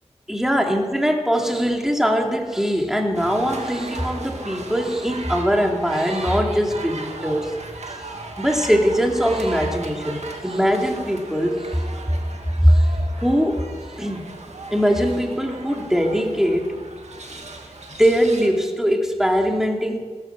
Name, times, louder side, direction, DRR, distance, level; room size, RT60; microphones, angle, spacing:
voice 1, 0.3-7.5 8.4-11.8 12.6-12.9 13.2-13.6 14.0-14.3 14.7-16.7 18.0-20.0, equal, 5° right, 1 dB, 2.9 m, -21 dB
sound 1, 3.1-18.5, right 2 dB, 70° right, 2.3 m, -36 dB
16.5 x 14.5 x 6.1 m, 1.5 s
wide cardioid pair, 50°, 12 cm